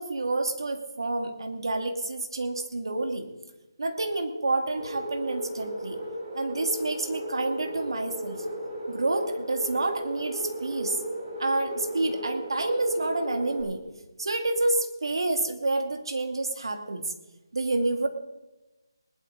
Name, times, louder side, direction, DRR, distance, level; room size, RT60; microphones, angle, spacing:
voice 1, 0.0-3.3 3.8-6.0 6.3-8.4 8.9-11.0 11.4-13.8 14.2-17.1 17.5-18.1, right 2 dB, 70° right, 6 dB, 2.4 m, -28 dB
sound 1, 4.7-13.6, right 1 dB, 25° right, 6.3 m, -35 dB
20.5 x 12.0 x 4.0 m, 1.1 s
figure-of-eight pair, 165°, 2 cm